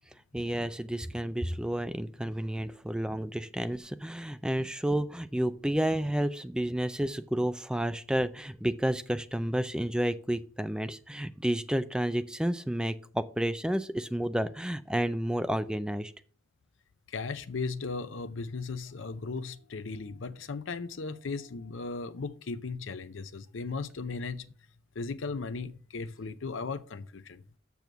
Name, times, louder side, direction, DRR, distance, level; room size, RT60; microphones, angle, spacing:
voice 1, 0.3-16.1, right 1 dB, 5° right, 0.4 m, -31 dB
voice 2, 17.1-24.5 25.0-27.4, left 4 dB, 75° left, 0.6 m, -36 dB
7.1 x 6.1 x 6.8 m
head